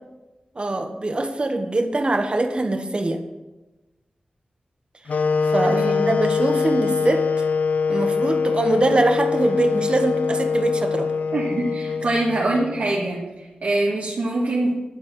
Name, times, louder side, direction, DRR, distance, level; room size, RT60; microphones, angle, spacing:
voice 1, 0.5-3.2 5.4-7.5 7.9-11.1, right 2 dB, 40° right, 6 dB, 1.1 m, -23 dB
sound 1, 5.1-13.1, left 5 dB, 70° left, 0.3 m, -23 dB
voice 2, 5.6-6.1 11.3-14.7, right 2 dB, 80° right, -6 dB, 1.9 m, -24 dB
10.5 x 4.1 x 7.5 m, 1.1 s
wide cardioid pair, 80°, 3 cm